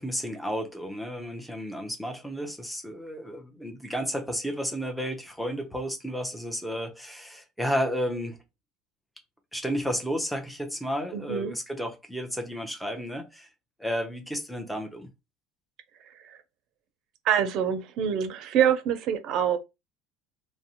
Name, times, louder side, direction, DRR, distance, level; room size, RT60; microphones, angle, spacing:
voice 1, 0.0-8.4 9.5-13.5 13.8-15.1, equal, ahead, 0.7 m, -32 dB
voice 2, 11.1-11.5 17.2-19.6, right 9 dB, 55° right, 0.5 m, -25 dB
2.5 x 2.1 x 2.8 m
supercardioid pair, 110°, 0 cm